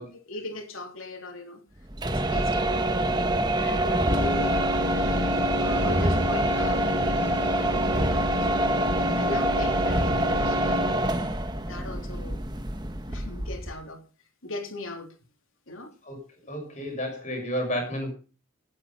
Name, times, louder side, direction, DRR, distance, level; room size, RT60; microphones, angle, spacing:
voice 1, 0.0-1.6 2.1-2.8 3.1-4.5 5.6-8.5 9.1-11.0 11.7-12.4 13.1-14.0 14.4-15.2 15.7-15.9, left 2 dB, 70° left, 3.3 m, -39 dB
sound 1, 1.9-13.8, right 1 dB, 20° right, 1.3 m, -25 dB
sound 2, 4.0-11.1, left 4 dB, 55° right, 2.9 m, -33 dB
voice 2, 5.6-5.9 10.6-11.0 16.0-16.2 16.5-18.1, equal, 35° left, 6.0 m, -32 dB
17.5 x 8.9 x 5.7 m
head